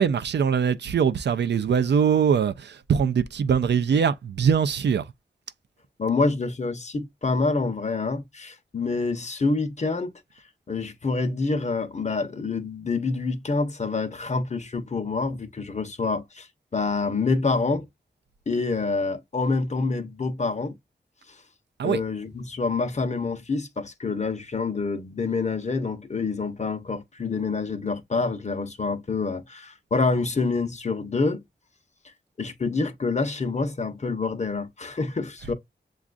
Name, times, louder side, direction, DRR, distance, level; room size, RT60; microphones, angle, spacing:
voice 1, 0.0-5.1 21.8-22.0, right 7 dB, 70° right, 0.4 m, -22 dB
voice 2, 6.0-10.1 10.7-16.5 16.7-17.9 18.5-20.7 21.3-21.4 21.8-31.4 32.4-35.5, left 3 dB, 40° left, 0.7 m, -27 dB
7.1 x 2.4 x 2.4 m
wide cardioid pair, 80°, 18 cm